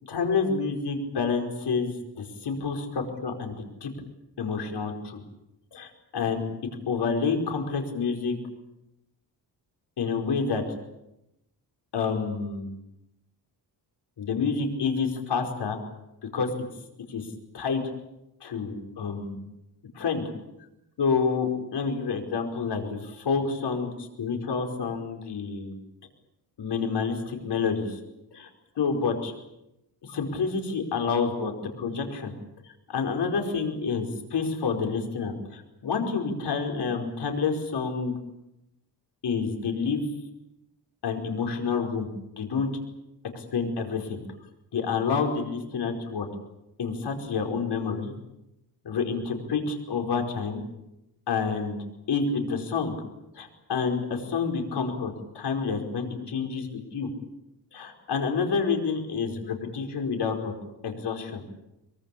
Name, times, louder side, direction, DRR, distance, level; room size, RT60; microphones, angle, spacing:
voice 1, 0.1-3.6 3.8-3.9 4.4-5.2 5.7-6.4 6.9-8.4 10.0-10.6 11.9-12.7 14.2-15.8 16.3-16.5 17.1-17.3 17.5-17.8 18.4-19.4 19.9-20.2 21.0-25.7 26.6-28.0 28.3-28.5 28.8-29.3 30.0-32.3 32.9-38.1 39.2-40.0 41.0-42.1 42.4-42.7 43.3-44.2 44.7-46.3 46.8-48.1 48.8-50.6 51.3-51.8 52.1-53.0 53.4-57.1 57.7-60.5 60.8-61.4, left 5 dB, 75° left, 3 dB, 5.0 m, -28 dB
23.5 x 23.5 x 8.6 m, 0.88 s
wide cardioid pair, 115°, 40 cm